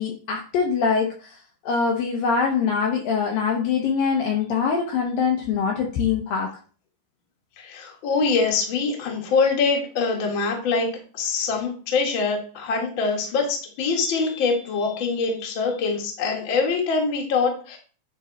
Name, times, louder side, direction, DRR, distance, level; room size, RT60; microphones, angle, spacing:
voice 1, 0.0-6.5, left 5 dB, 75° left, 1 dB, 2.2 m, -23 dB
voice 2, 7.6-10.9 11.1-17.8, left 4 dB, 55° left, 0 dB, 1.4 m, -24 dB
9.8 x 3.8 x 4.0 m, 0.40 s
omnidirectional pair, 5.0 m